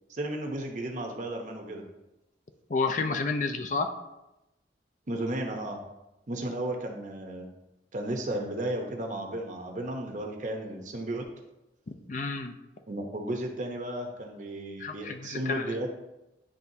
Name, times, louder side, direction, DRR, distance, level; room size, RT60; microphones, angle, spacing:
voice 1, 0.1-1.8 5.1-5.8 6.3-7.5 7.9-11.3 12.9-15.9, right 1 dB, 45° right, 3 dB, 0.9 m, -34 dB
voice 2, 2.7-3.9 11.9-12.5 14.8-15.7, left 4 dB, 45° left, 6 dB, 0.5 m, -30 dB
10.0 x 3.5 x 2.8 m, 0.95 s
head